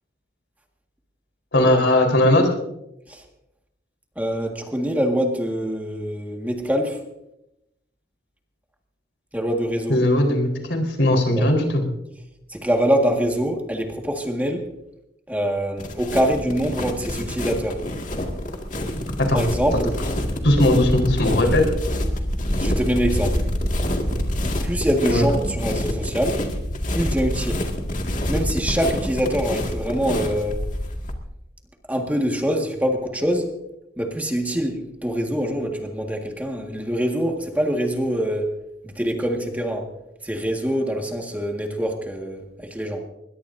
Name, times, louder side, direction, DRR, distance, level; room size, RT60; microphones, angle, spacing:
voice 1, 1.5-2.5 9.9-11.8 19.2-19.4 20.4-21.7 25.1-25.2, left 1 dB, 85° left, 3 dB, 4.3 m, -18 dB
voice 2, 4.2-7.0 9.3-10.0 11.3-11.5 12.5-14.7 15.3-17.9 19.3-19.9 22.6-23.4 24.6-26.4 26.9-27.6 28.3-30.6 31.9-33.5 34.0-38.5 38.8-39.9 40.2-43.1, equal, 10° right, 2 dB, 1.7 m, -24 dB
sound 1, 15.8-31.1, left 1 dB, 45° left, 2.0 m, -26 dB
22.0 x 20.5 x 2.7 m, 0.85 s
head